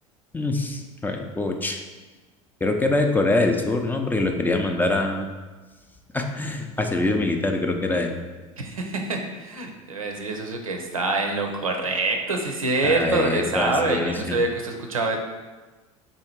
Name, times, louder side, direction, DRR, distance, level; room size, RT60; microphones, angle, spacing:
voice 1, 0.3-1.8 2.6-5.3 6.1-8.2 12.8-14.4, left 2 dB, 10° left, 3 dB, 0.4 m, -24 dB
voice 2, 8.6-15.2, right 3 dB, 85° right, 3 dB, 0.6 m, -25 dB
3.6 x 2.7 x 4.5 m, 1.3 s
figure-of-eight pair, 75°, 17 cm